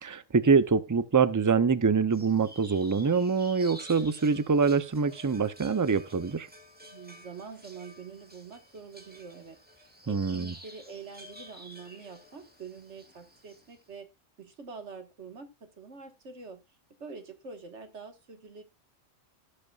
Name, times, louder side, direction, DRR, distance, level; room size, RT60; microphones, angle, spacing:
voice 1, 0.0-6.5 10.1-10.5, right 5 dB, 25° right, 0.4 m, -25 dB
sound 1, 2.1-13.8, equal, 5° right, 2.2 m, -51 dB
voice 2, 6.8-9.6 10.0-14.1 14.4-16.6 17.0-18.6, right 5 dB, 65° right, 1.8 m, -45 dB
17.5 x 6.7 x 2.4 m
omnidirectional pair, 1.3 m